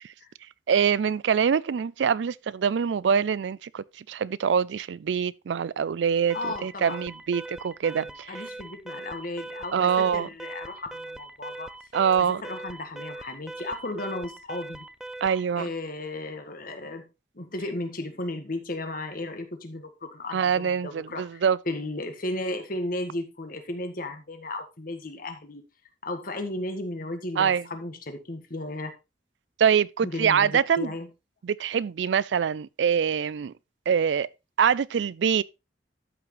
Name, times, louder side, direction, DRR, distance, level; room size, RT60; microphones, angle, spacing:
voice 1, 0.7-6.4 6.6-8.4 9.7-10.3 11.9-12.4 15.2-15.7 20.3-21.6 27.4-27.6 29.6-30.9 31.4-33.5 33.9-34.3 34.6-35.4, right 7 dB, 80° right, 0.4 m, -24 dB
voice 2, 6.3-7.0 7.8-11.7 12.3-14.9 15.6-17.1 17.3-25.6 26.0-29.0 30.0-31.1, left 2 dB, 55° left, 1.6 m, -35 dB
Alarm, 6.3-15.5, right 2 dB, 5° right, 0.4 m, -41 dB
13.0 x 6.0 x 3.2 m
head